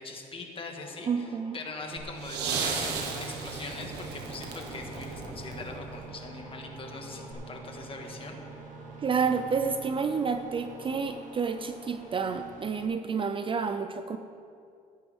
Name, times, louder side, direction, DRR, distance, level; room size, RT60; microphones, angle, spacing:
voice 1, 0.0-8.4, left 3 dB, 30° left, 2 dB, 1.7 m, -41 dB
sound 1, 0.8-12.2, equal, 5° right, 3.0 m, -51 dB
voice 2, 1.1-1.6 9.0-14.2, right 5 dB, 30° right, 9 dB, 0.5 m, -29 dB
sound 2, 1.8-12.8, right 4 dB, 50° right, 1.6 m, -47 dB
sound 3, 2.0-6.1 7.3-7.4, right 5 dB, 90° right, 1.5 m, -35 dB
16.5 x 9.3 x 3.6 m, 2.5 s
cardioid pair, 110°, 17 cm